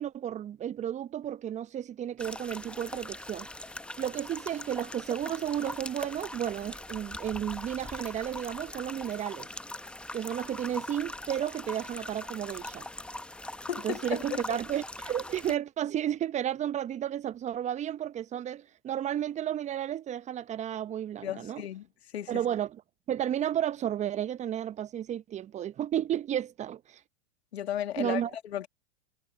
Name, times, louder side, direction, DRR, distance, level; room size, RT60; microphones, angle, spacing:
voice 1, 0.0-3.5 4.0-9.5 10.1-12.9 13.8-21.6 22.3-22.7 23.1-27.0 28.0-28.3, right 10 dB, 20° right, 0.9 m, -32 dB
sound 1, 2.2-15.6, left 1 dB, 5° left, 1.0 m, -41 dB
voice 2, 13.7-14.6 21.2-21.9 22.1-22.4 27.5-28.7, left 11 dB, 70° left, 2.5 m, -35 dB
hypercardioid pair, 105°, 33 cm